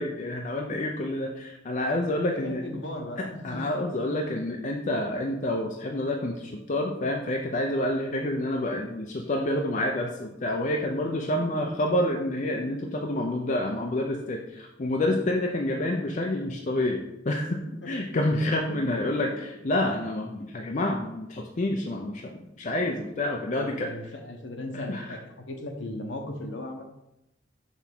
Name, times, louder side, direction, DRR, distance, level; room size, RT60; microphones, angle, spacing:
voice 1, 0.0-2.6 3.2-17.6 17.9-23.9 24.7-25.2, left 1 dB, 40° left, 1 dB, 0.5 m, -28 dB
voice 2, 2.2-3.7 11.4-11.5 17.8-17.9 18.7-18.8 19.1-19.2 20.4-20.5 23.4-25.2 25.5-26.8, left 1 dB, 70° left, 3 dB, 1.1 m, -37 dB
5.9 x 3.5 x 6.0 m, 0.88 s
head